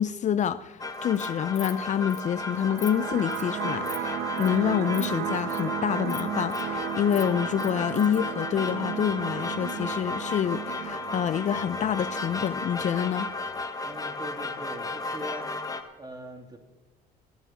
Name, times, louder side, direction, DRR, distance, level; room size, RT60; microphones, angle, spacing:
voice 1, 0.0-13.3, left 9 dB, 45° left, 0.5 m, -27 dB
sound 1, 0.8-15.8, left 2 dB, 20° left, 1.4 m, -34 dB
Insect, 0.9-1.3 1.5-1.8 2.1-2.2 2.6-2.9 3.3-3.5 3.8-4.0 4.4-4.6 4.9-5.1 5.3-5.6 6.1-6.6 6.9-8.2, left 12 dB, 70° left, 1.2 m, -42 dB
sound 2, 2.3-13.3, right 12 dB, 75° right, 0.7 m, -36 dB
voice 2, 13.8-15.5 16.0-16.6, right 1 dB, 25° right, 2.7 m, -41 dB
14.0 x 9.3 x 7.3 m
cardioid pair, 110°, 17 cm